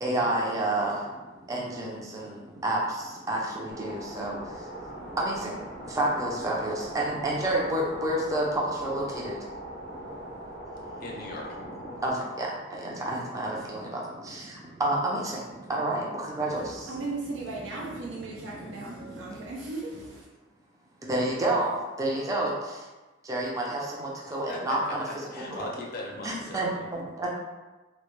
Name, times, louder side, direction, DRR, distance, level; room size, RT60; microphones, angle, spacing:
voice 1, 0.0-0.9 1.5-2.3 2.6-2.8 3.3-4.4 5.1-5.5 5.9-9.3 12.0-14.5 14.8-15.4 15.7-16.8 19.0-19.1 21.1-22.5 23.3-25.0 25.5-25.6 26.2-27.3, right 1 dB, 20° right, -3 dB, 0.4 m, -29 dB
sound 1, 3.7-12.1, right 1 dB, 65° right, 1.0 m, -41 dB
voice 2, 11.0-11.5 24.5-26.9, left 2 dB, 50° left, -2 dB, 0.5 m, -38 dB
voice 3, 16.5-20.3, right 3 dB, 85° right, -4 dB, 0.4 m, -37 dB
2.1 x 2.1 x 3.0 m, 1.2 s
head